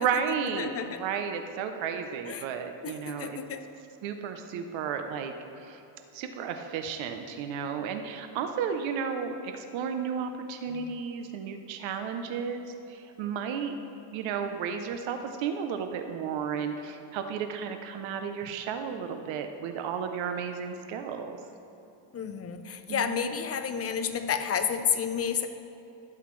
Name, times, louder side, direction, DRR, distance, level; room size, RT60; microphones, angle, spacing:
voice 1, 0.0-3.4 4.0-5.8 6.1-13.8 14.1-21.4 22.9-23.3, right 7 dB, 75° right, 6 dB, 0.8 m, -33 dB
voice 2, 0.6-1.0 2.3-2.4 2.8-3.6 10.7-10.9 22.1-25.5, left 7 dB, 30° left, 8 dB, 0.5 m, -31 dB
12.0 x 8.0 x 3.2 m, 3.0 s
cardioid pair, 125°, 47 cm